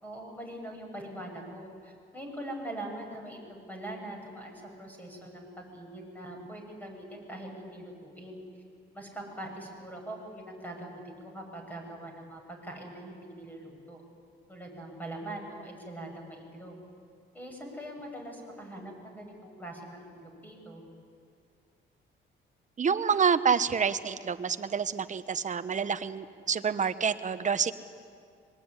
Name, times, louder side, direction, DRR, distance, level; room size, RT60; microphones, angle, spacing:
voice 1, 0.0-8.4 8.9-14.0 14.5-16.8 17.3-20.8, right 1 dB, 10° left, 1 dB, 7.6 m, -42 dB
voice 2, 22.8-27.7, right 6 dB, 40° right, 11 dB, 1.2 m, -28 dB
25.5 x 22.0 x 9.9 m, 2.3 s
cardioid pair, 90°, 20 cm